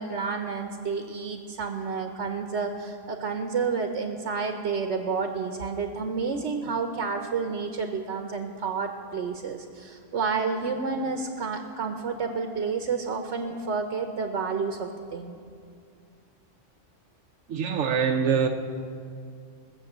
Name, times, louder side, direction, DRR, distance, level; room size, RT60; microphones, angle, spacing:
voice 1, 0.0-15.4, right 5 dB, 70° right, 5 dB, 1.1 m, -30 dB
voice 2, 17.5-18.5, right 6 dB, 90° right, 3 dB, 1.0 m, -24 dB
19.5 x 7.3 x 7.3 m, 2.3 s
omnidirectional pair, 1.3 m